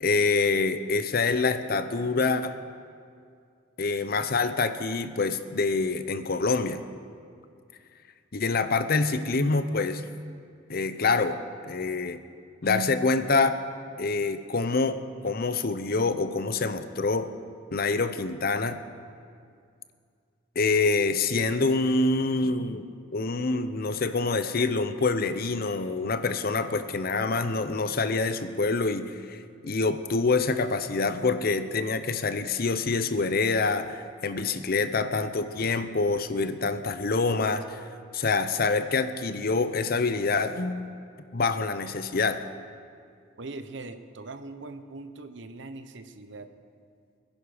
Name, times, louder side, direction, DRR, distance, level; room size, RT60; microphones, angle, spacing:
voice 1, 0.0-2.6 3.8-6.8 8.3-10.0 10.7-11.4 11.6-12.2 12.6-13.6 14.0-17.3 17.7-18.8 20.6-22.9 23.1-37.8 38.1-40.9 41.3-42.5, left 3 dB, 50° left, 11 dB, 0.7 m, -26 dB
voice 2, 43.4-46.5, right 2 dB, 70° right, 10 dB, 0.9 m, -41 dB
22.5 x 10.5 x 5.0 m, 2.3 s
head